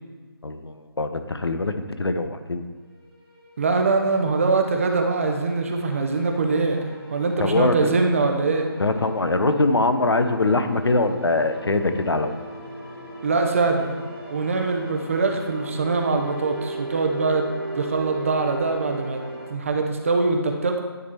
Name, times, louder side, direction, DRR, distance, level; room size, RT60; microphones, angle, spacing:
voice 1, 0.4-2.6 7.4-7.9 8.8-12.4, left 2 dB, 85° left, 8 dB, 0.7 m, -22 dB
sound 1, 3.3-19.5, right 1 dB, 10° left, 1.5 m, -38 dB
voice 2, 3.6-8.7 13.2-14.0 14.3-17.4 17.7-19.2 19.5-20.8, right 3 dB, 35° right, 4 dB, 0.7 m, -23 dB
10.0 x 3.4 x 4.4 m, 1.4 s
figure-of-eight pair, 160°, 13 cm